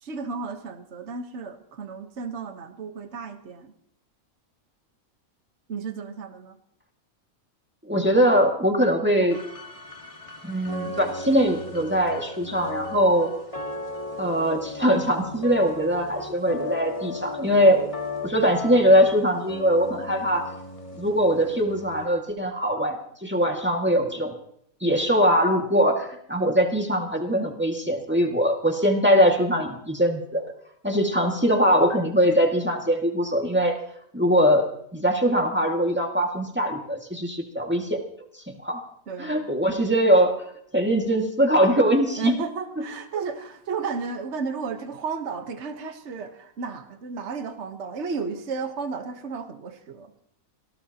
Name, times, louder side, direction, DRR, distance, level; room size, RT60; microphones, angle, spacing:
voice 1, 0.0-3.7 5.7-6.6 39.1-39.5 42.2-50.1, right 5 dB, 55° right, 6 dB, 1.5 m, -33 dB
voice 2, 7.9-9.4 10.4-13.3 14.2-17.9 18.2-20.5 21.0-23.0 23.2-24.3 24.8-30.4 30.8-33.8 34.1-38.0 38.5-38.8 39.2-40.4 40.7-42.3 42.8-42.9, equal, 10° right, 2 dB, 2.0 m, -22 dB
sound 1, 9.3-22.1, left 2 dB, 25° left, 1.8 m, -36 dB
26.0 x 19.0 x 2.9 m, 0.71 s
omnidirectional pair, 1.5 m